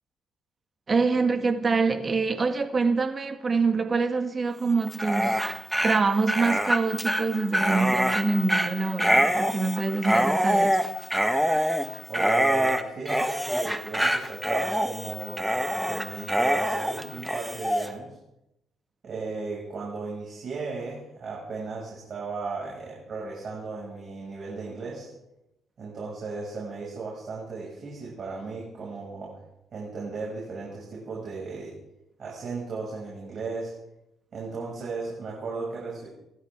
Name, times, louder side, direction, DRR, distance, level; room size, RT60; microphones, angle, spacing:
voice 1, 0.9-5.4 5.8-10.8, right 4 dB, 35° right, 1.8 m, -25 dB
Dog, 4.9-17.9, equal, 5° right, 1.4 m, -25 dB
voice 2, 12.1-18.1 19.0-25.1 25.8-29.3 29.7-31.7 32.2-33.7 34.3-36.1, right 4 dB, 55° right, 6.3 m, -35 dB
27.5 x 12.5 x 3.7 m
cardioid pair, 90°, 0 cm